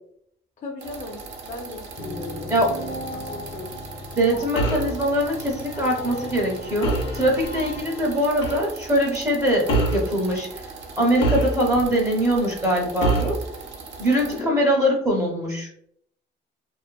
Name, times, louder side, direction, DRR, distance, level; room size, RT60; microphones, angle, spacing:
voice 1, 0.6-3.7 14.3-14.6, left 2 dB, 40° left, 0 dB, 0.5 m, -37 dB
sound 1, 0.8-14.4, right 4 dB, 65° right, 0.6 m, -40 dB
sound 2, 2.0-8.7, left 1 dB, 60° left, 1.0 m, -37 dB
voice 2, 4.2-10.5 11.0-13.4 14.0-15.7, equal, 15° right, -2 dB, 0.6 m, -22 dB
sound 3, 4.5-4.9 6.8-7.2 8.4-8.6 9.7-10.1 11.2-11.9 13.0-13.4, right 2 dB, 85° left, 0.8 m, -23 dB
2.5 x 2.4 x 2.2 m, 0.69 s
cardioid pair, 90°, 20 cm